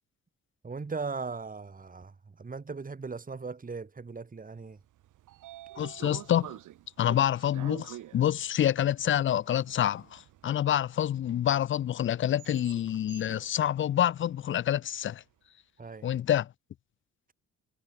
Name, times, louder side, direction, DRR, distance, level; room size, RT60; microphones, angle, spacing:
voice 1, 0.6-4.8 15.8-16.1, right 4 dB, 25° right, 3.8 m, -38 dB
Train / Sliding door, 4.8-15.0, right 14 dB, 85° right, 6.7 m, -49 dB
voice 2, 5.8-6.6 7.0-15.2 16.0-16.5, left 11 dB, 40° left, 0.5 m, -27 dB
cardioid pair, 90°, 30 cm